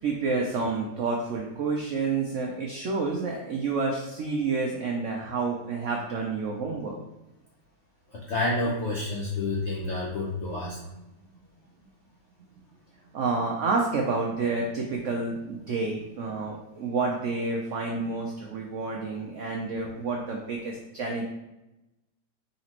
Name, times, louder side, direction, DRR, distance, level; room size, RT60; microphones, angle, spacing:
voice 1, 0.0-7.0 10.6-10.8 13.1-21.2, right 4 dB, 85° right, 0 dB, 0.6 m, -29 dB
voice 2, 8.1-10.8, left 2 dB, 60° left, -4 dB, 0.7 m, -29 dB
4.1 x 3.9 x 2.9 m, 0.97 s
omnidirectional pair, 2.0 m